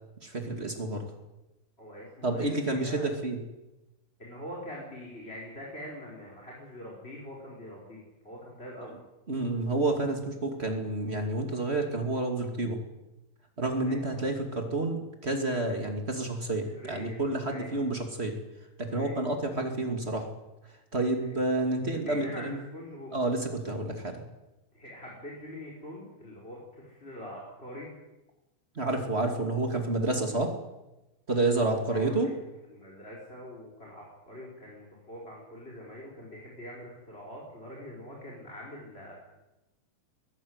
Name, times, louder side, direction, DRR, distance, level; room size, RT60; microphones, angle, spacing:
voice 1, 0.2-1.0 2.2-3.4 9.3-12.8 13.6-18.3 18.8-20.3 20.9-22.6 23.1-24.2 28.7-30.5 31.3-32.3, right 2 dB, 25° right, 4 dB, 1.6 m, -29 dB
voice 2, 1.8-3.1 4.2-9.0 13.8-14.0 16.6-17.2 17.5-17.9 18.9-19.3 21.1-21.3 22.1-23.2 24.7-27.9 31.9-32.4 32.7-39.1, equal, 15° left, -3 dB, 4.8 m, -44 dB
22.0 x 14.5 x 9.7 m, 1.0 s
omnidirectional pair, 5.1 m